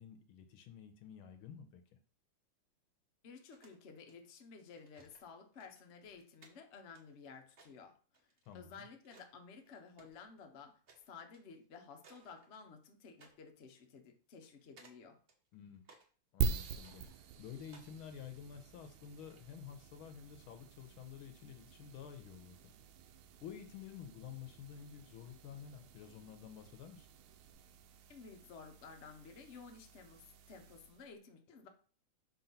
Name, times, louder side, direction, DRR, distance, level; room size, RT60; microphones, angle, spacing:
voice 1, 0.0-1.8 8.5-8.9 15.5-15.8 16.3-22.6 23.4-27.1, left 8 dB, 80° left, 8 dB, 1.6 m, -51 dB
voice 2, 3.2-8.3 8.5-10.8 11.1-15.2 28.1-31.7, left 5 dB, 55° left, 5 dB, 0.8 m, -54 dB
sound 1, 3.4-4.1 4.8-5.2 5.5-9.3 9.6-10.4 10.9-11.1 11.3-11.5 12.0-12.9 13.2-13.4 13.7-13.8 14.4-14.9 15.3-16.1 16.5-17.9 18.7-19.5, right 3 dB, 40° right, 0.8 m, -64 dB
sound 2, 16.4-31.1, right 6 dB, 85° right, 1.5 m, -45 dB
4.5 x 4.0 x 5.6 m, 0.41 s
omnidirectional pair, 2.4 m